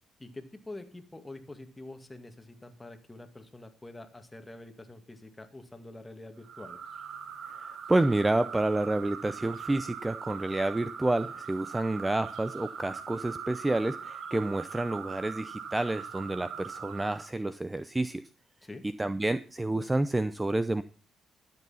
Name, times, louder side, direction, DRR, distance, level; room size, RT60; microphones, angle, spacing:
voice 1, 0.2-6.8 18.6-18.8, left 2 dB, 15° left, 6 dB, 2.1 m, -46 dB
sound 1, 6.4-17.3, right 7 dB, 65° right, 1.6 m, -41 dB
voice 2, 7.6-18.2 19.0-20.8, right 2 dB, 15° right, 13 dB, 0.6 m, -29 dB
12.0 x 8.3 x 5.7 m, 0.38 s
cardioid pair, 90°, 0 cm